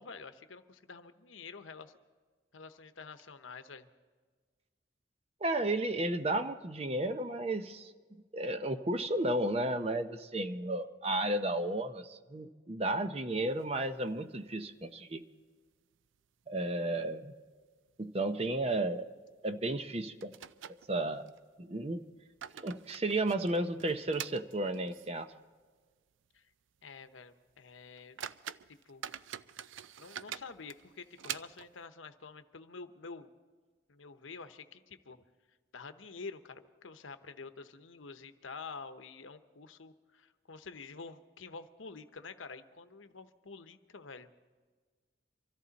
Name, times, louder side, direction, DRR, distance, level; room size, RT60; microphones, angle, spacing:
voice 1, 0.0-1.9 2.5-3.9 26.3-26.4 26.8-28.2 28.7-29.1 30.0-33.3 33.9-35.2 35.7-44.3, left 4 dB, 90° left, 10 dB, 0.9 m, -48 dB
voice 2, 5.4-7.9 8.3-15.2 16.5-17.3 18.0-19.1 19.4-20.3 20.9-21.3 21.6-22.0 22.6-25.3, right 1 dB, 30° right, 9 dB, 0.7 m, -33 dB
sound 1, 13.5-14.4 14.8-14.9 15.2-15.3 15.9-16.4 16.7-16.8 17.5-17.6 17.9-18.1 19.5-19.6 20.2-21.4 22.1-25.3 25.6-25.7 26.2-26.4 26.8-27.0 27.5-27.6 28.0-31.9, right 10 dB, 80° right, 0.4 m, -46 dB
24.5 x 14.0 x 4.1 m, 1.5 s
head